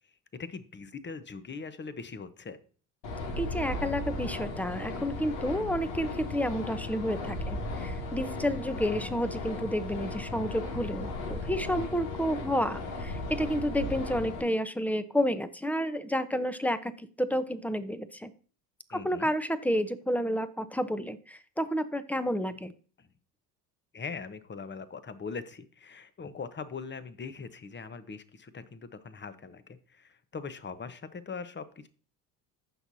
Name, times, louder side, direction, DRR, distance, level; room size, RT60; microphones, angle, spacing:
voice 1, 0.3-2.6 18.9-19.3 23.0-23.1 23.9-31.9, left 5 dB, 25° left, 12 dB, 1.1 m, -41 dB
sound 1, 3.0-14.4, left 2 dB, 70° left, 2.2 m, -36 dB
voice 2, 3.4-18.3 18.9-22.7, equal, 5° left, 13 dB, 0.8 m, -30 dB
15.0 x 6.0 x 2.8 m, 0.40 s
hypercardioid pair, 65°, 47 cm